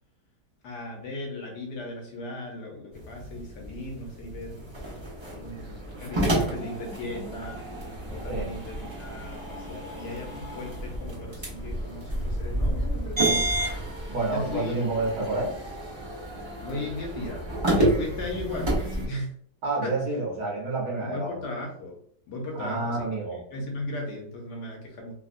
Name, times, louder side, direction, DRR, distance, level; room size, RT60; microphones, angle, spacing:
voice 1, 0.6-7.6 8.1-13.5 14.3-14.7 15.1-15.3 16.6-19.3 19.8-20.0 21.0-22.0 22.3-23.1 23.5-25.1, left 2 dB, 70° left, 0 dB, 1.3 m, -37 dB
sound 1, 2.9-19.1, right 1 dB, 40° right, 0.4 m, -30 dB
voice 2, 14.1-15.5 19.6-21.4 22.6-23.4, right 3 dB, 65° right, -3 dB, 1.4 m, -29 dB
3.5 x 2.2 x 2.5 m, 0.63 s
omnidirectional pair, 1.9 m